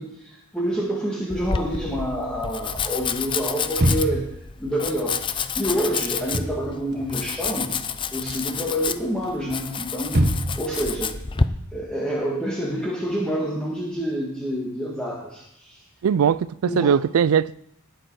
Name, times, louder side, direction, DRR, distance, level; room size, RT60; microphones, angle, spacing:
voice 1, 0.0-4.3 4.6-7.7 8.1-10.3 10.6-11.1 11.7-15.8 16.6-16.9, equal, 5° left, 1.8 m, -27 dB
Domestic sounds home sounds, 1.3-11.5, left 5 dB, 20° left, 0.5 m, -29 dB
sound 1, 3.7-4.4 6.1-6.6 6.9-7.9 8.2-8.6 9.2-10.7, right 1 dB, 50° right, 1.4 m, -24 dB
voice 2, 16.0-17.5, right 7 dB, 80° right, 0.3 m, -20 dB
19.0 x 6.5 x 4.7 m
head